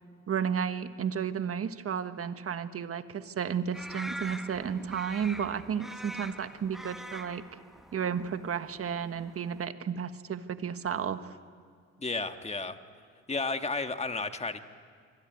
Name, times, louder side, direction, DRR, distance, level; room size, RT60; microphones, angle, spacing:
voice 1, 0.3-7.4 7.9-11.4, right 7 dB, 50° right, 10 dB, 1.5 m, -33 dB
sound 1, 3.7-9.6, equal, ahead, 1.4 m, -44 dB
voice 2, 12.0-12.8 13.3-14.6, left 3 dB, 20° left, 7 dB, 1.6 m, -32 dB
26.0 x 23.5 x 9.4 m, 2.1 s
cardioid pair, 90°, 30 cm